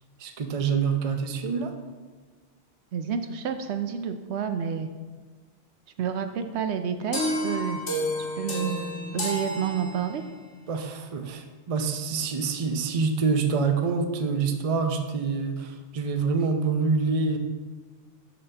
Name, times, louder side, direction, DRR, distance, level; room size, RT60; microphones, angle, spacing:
voice 1, 0.2-1.7 10.7-17.4, right 5 dB, 40° right, 5 dB, 0.5 m, -26 dB
voice 2, 2.9-4.9 6.0-7.8 8.4-8.8 9.1-10.2, right 7 dB, 70° right, 8 dB, 0.8 m, -29 dB
sound 1, 7.1-10.4, equal, 70° left, 1.9 m, -30 dB
12.0 x 4.1 x 3.3 m, 1.4 s
omnidirectional pair, 1.2 m